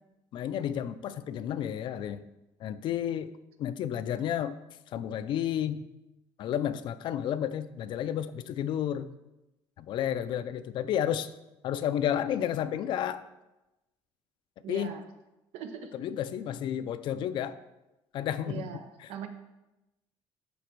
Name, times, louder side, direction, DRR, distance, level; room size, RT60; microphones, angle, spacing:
voice 1, 0.3-2.2 2.6-3.3 3.6-4.6 4.9-5.9 6.4-9.1 9.8-11.3 11.6-13.2 14.7-15.0 15.9-17.6 18.1-18.7, left 10 dB, 55° left, 13 dB, 0.4 m, -31 dB
voice 2, 14.6-15.0 15.5-15.9 18.5-19.3, right 8 dB, 85° right, 7 dB, 0.9 m, -40 dB
12.5 x 4.1 x 4.5 m, 0.98 s
cardioid pair, 155°, 10 cm